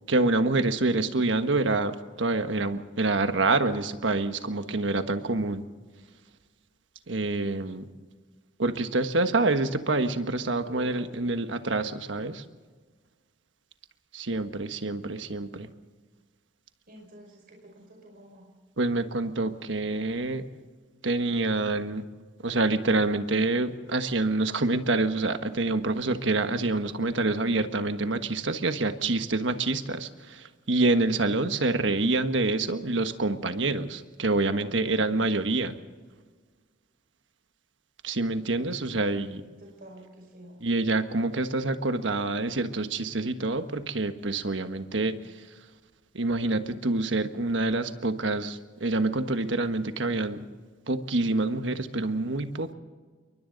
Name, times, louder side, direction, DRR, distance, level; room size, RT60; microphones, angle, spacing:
voice 1, 0.1-5.6 7.1-7.9 8.6-12.4 14.1-15.7 18.8-20.5 21.0-22.0 22.4-35.8 38.0-39.4 40.6-45.2 46.1-50.4 50.9-52.7, right 2 dB, 75° right, 8 dB, 1.4 m, -27 dB
voice 2, 10.6-11.2 16.9-18.5 34.5-35.4 39.3-40.6, equal, 55° right, 0 dB, 5.5 m, -48 dB
29.0 x 23.0 x 4.0 m, 1.5 s
head